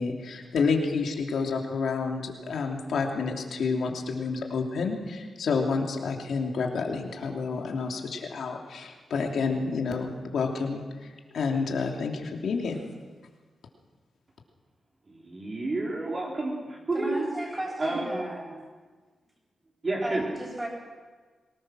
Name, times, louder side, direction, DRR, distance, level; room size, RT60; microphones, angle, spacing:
voice 1, 0.0-12.8, left 4 dB, 80° left, 1 dB, 3.1 m, -29 dB
voice 2, 15.1-17.3 17.8-18.3 19.8-20.2, right 2 dB, 35° right, -2 dB, 3.7 m, -30 dB
voice 3, 16.9-18.6 20.0-20.7, right 1 dB, 15° right, -1 dB, 7.9 m, -34 dB
23.5 x 19.5 x 6.3 m, 1.4 s
wide cardioid pair, 110°, 0 cm